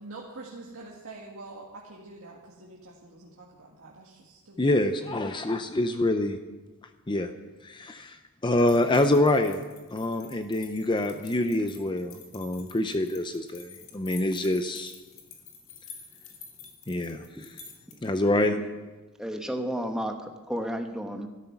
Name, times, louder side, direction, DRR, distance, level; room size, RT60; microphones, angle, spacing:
voice 1, 0.0-4.8, right 2 dB, 75° right, -4 dB, 1.8 m, -45 dB
voice 2, 4.6-6.4 7.1-7.3 7.6-9.6 9.9-14.9 16.9-17.2 18.0-18.5, left 1 dB, 20° left, 8 dB, 0.5 m, -26 dB
sound 1, 8.6-18.2, left 6 dB, 60° left, 2.1 m, -49 dB
voice 3, 19.2-21.3, equal, 5° right, 4 dB, 1.1 m, -32 dB
13.0 x 12.5 x 5.9 m, 1.2 s
head